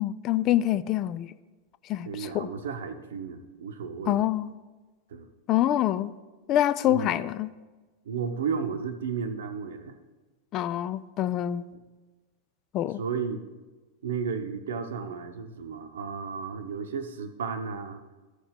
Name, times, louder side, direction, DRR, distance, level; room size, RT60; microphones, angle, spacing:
voice 1, 0.0-1.3 1.9-2.5 4.1-4.5 5.5-6.1 6.5-7.5 10.5-11.6 12.7-13.0, left 12 dB, 35° left, 15 dB, 0.3 m, -26 dB
voice 2, 2.0-4.2 5.1-5.3 6.9-7.2 8.0-10.0 11.7-11.8 13.0-13.4 14.0-18.0, right 6 dB, 60° right, 9 dB, 0.8 m, -33 dB
13.5 x 4.9 x 5.1 m, 1.2 s
figure-of-eight pair, 90°, 0 cm